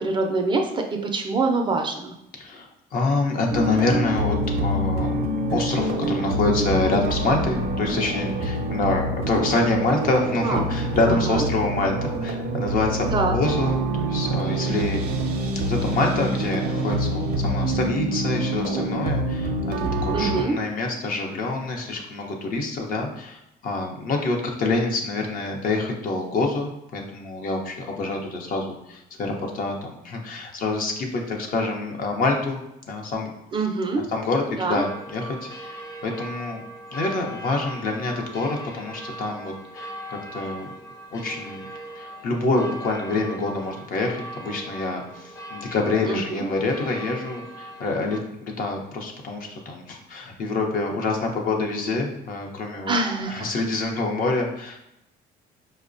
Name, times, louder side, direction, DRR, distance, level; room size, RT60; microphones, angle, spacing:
voice 1, 0.0-2.1 10.4-10.7 11.1-11.5 13.1-13.4 20.1-20.6 33.5-34.1 34.6-34.8 46.0-46.5 52.9-53.5, right 3 dB, 30° right, 3 dB, 0.4 m, -25 dB
voice 2, 2.4-5.2 5.5-15.0 15.6-32.6 32.9-33.3 34.1-36.6 36.9-40.7 41.1-41.7 42.0-52.9 53.3-54.9, left 2 dB, 55° left, 2 dB, 0.7 m, -26 dB
sound 1, 3.5-20.4, right 1 dB, 85° right, 0.5 m, -26 dB
sound 2, 34.7-48.2, right 1 dB, 20° left, 0.6 m, -39 dB
4.7 x 2.1 x 2.5 m, 0.83 s
cardioid pair, 110°, 17 cm